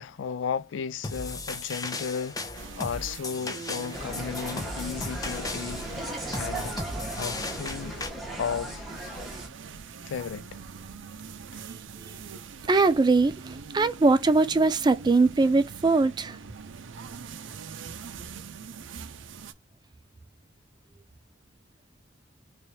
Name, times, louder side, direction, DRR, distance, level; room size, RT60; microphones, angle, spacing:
voice 1, 0.0-5.9 6.3-6.8 7.2-8.0 8.4-8.9 10.1-10.6 11.5-11.6, left 7 dB, 80° left, 0.4 m, -34 dB
sound 1, 1.0-8.1, left 2 dB, 20° left, 0.6 m, -36 dB
sound 2, 2.5-19.5, right 5 dB, 85° right, 0.5 m, -43 dB
Insect, 3.9-9.5, right 1 dB, ahead, 0.9 m, -37 dB
voice 2, 12.7-16.4, right 3 dB, 25° right, 0.3 m, -21 dB
3.2 x 3.2 x 2.7 m
head